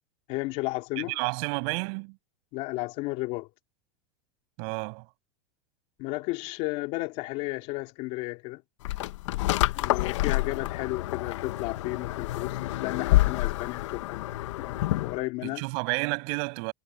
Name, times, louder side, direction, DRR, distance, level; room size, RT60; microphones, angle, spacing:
voice 1, 0.3-1.2 2.5-3.5 6.0-8.6 9.7-14.2 14.6-15.6, left 22 dB, 45° left, 3.1 m, -33 dB
voice 2, 1.0-2.2 4.6-5.1 15.4-16.7, right 34 dB, 55° right, 6.5 m, -31 dB
sound 1, 8.8-15.2, left 16 dB, 80° left, 1.0 m, -28 dB
supercardioid pair, 155°, 15 cm